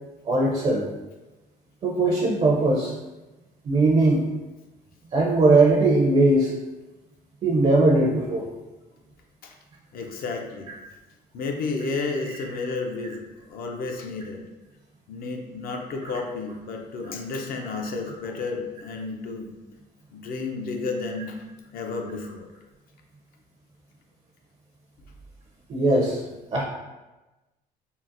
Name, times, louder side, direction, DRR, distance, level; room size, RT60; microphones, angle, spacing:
voice 1, 0.3-0.8 1.8-2.9 3.7-4.2 5.1-6.5 7.4-8.5 25.7-26.2 26.5-26.6, right 2 dB, 40° right, -2 dB, 0.5 m, -19 dB
voice 2, 9.9-10.7 11.3-14.4 15.1-19.5 20.1-21.4 21.7-22.5, left 3 dB, 60° left, 2 dB, 0.5 m, -32 dB
3.8 x 2.1 x 2.5 m, 1.1 s
cardioid pair, 110°, 17 cm